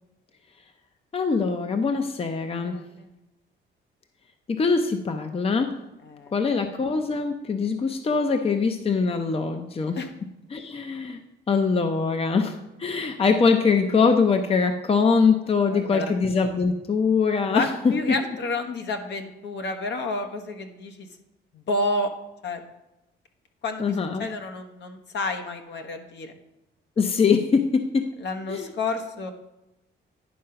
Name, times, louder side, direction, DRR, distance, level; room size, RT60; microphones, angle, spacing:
voice 1, 1.1-2.8 4.5-5.7 6.3-10.0 10.5-11.2 11.5-17.7 23.8-24.3 27.0-28.1 28.5-28.7, left 5 dB, 30° left, 6 dB, 0.7 m, -23 dB
voice 2, 2.6-3.1 6.0-6.3 10.0-10.1 15.7-16.2 17.5-21.1 21.5-22.1 22.4-22.6 23.6-23.8 24.2-26.3 28.2-29.3, left 2 dB, 65° left, 5 dB, 1.2 m, -30 dB
10.5 x 3.8 x 5.7 m, 0.95 s
cardioid pair, 90°, 20 cm